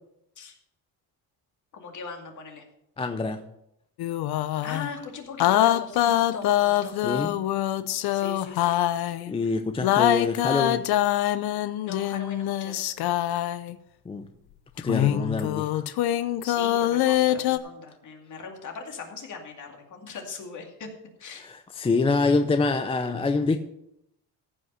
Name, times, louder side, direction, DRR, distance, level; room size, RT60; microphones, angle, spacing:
voice 1, 1.7-2.7 4.6-6.9 8.1-8.8 11.8-12.8 16.4-20.9 21.2-21.4, left 4 dB, 45° left, 2 dB, 2.4 m, -39 dB
voice 2, 3.0-3.4 7.0-7.3 9.3-10.8 14.1-14.3 14.8-15.8 21.4-23.6, left 3 dB, 15° left, 8 dB, 0.5 m, -25 dB
sound 1, 4.0-4.9 5.4-9.3 9.8-13.7 14.8-17.6, left 13 dB, 65° left, 0.7 m, -24 dB
14.5 x 5.7 x 5.6 m, 0.80 s
cardioid pair, 125°, 40 cm